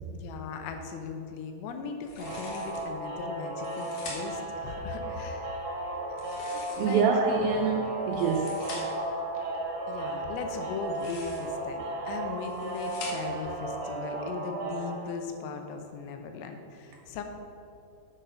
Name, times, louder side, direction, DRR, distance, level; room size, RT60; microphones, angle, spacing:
voice 1, 0.1-5.6 6.8-7.2 9.9-17.2, left 5 dB, 85° left, 5 dB, 2.9 m, -38 dB
sound 1, 2.0-2.9 3.5-4.5 6.1-7.2 8.0-9.1 10.8-11.6 12.2-13.5, left 3 dB, 60° left, 2.2 m, -44 dB
sound 2, 2.2-15.0, right 2 dB, 50° right, 2.3 m, -35 dB
voice 2, 6.7-8.7, right 5 dB, 85° right, 1 dB, 2.1 m, -26 dB
8.9 x 7.0 x 5.6 m, 2.7 s
omnidirectional pair, 4.8 m